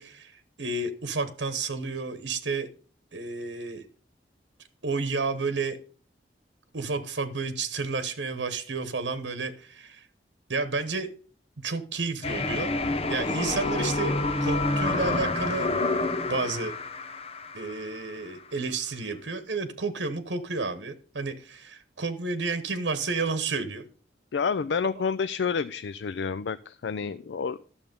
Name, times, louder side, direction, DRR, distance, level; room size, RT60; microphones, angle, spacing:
voice 1, 0.0-2.7 3.1-3.9 4.8-5.8 6.7-10.1 10.5-11.1 11.6-12.7 13.1-15.7 16.3-16.7 17.5-23.8, right 4 dB, 85° right, 11 dB, 1.1 m, -31 dB
sound 1, 12.2-18.2, left 2 dB, 35° left, 0.9 m, -28 dB
voice 2, 24.3-27.6, left 5 dB, 75° left, 14 dB, 0.4 m, -29 dB
11.5 x 7.1 x 5.3 m, 0.42 s
head